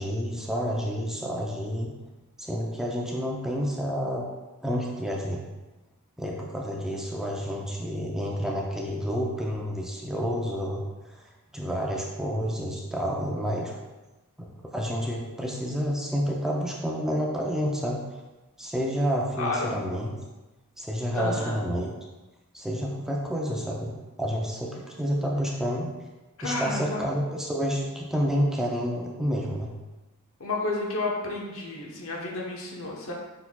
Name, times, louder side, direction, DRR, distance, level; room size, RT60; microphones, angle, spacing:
voice 1, 0.0-1.9 2.4-4.2 4.6-5.4 6.2-11.1 11.5-13.8 14.4-18.0 18.6-20.1 20.8-21.9 22.5-25.9 26.4-29.7, equal, ahead, -2 dB, 0.4 m, -29 dB
voice 2, 19.4-19.8 21.1-21.6 26.4-27.0 30.4-33.1, left 2 dB, 65° left, -2 dB, 0.9 m, -31 dB
5.5 x 4.2 x 2.3 m, 1.1 s
head